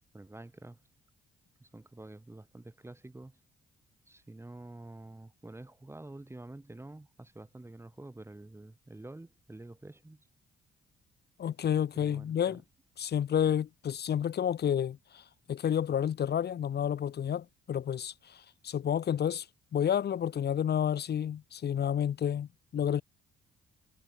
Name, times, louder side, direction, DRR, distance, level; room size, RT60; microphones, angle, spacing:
voice 1, 0.1-0.8 1.6-3.4 4.1-10.2 11.9-12.6, right 2 dB, 15° right, 3.9 m, -48 dB
voice 2, 11.4-12.6 13.0-19.5 19.7-23.0, left 9 dB, 55° left, 1.7 m, -30 dB
cardioid pair, 90°, 20 cm